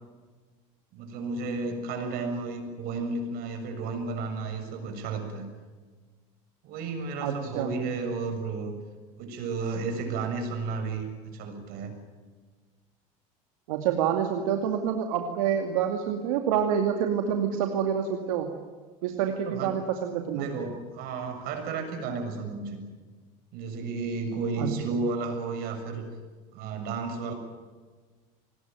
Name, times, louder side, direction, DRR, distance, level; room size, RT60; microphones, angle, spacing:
voice 1, 0.9-5.5 6.6-8.7 9.2-11.9 19.1-19.7 20.3-22.8 23.5-26.1 26.5-27.3, right 4 dB, 60° right, 6 dB, 7.1 m, -33 dB
voice 2, 7.2-7.7 13.7-18.5 19.0-20.5 24.6-24.7, right 8 dB, 85° right, 4 dB, 2.4 m, -27 dB
24.5 x 20.0 x 9.2 m, 1.4 s
supercardioid pair, 105°, 17 cm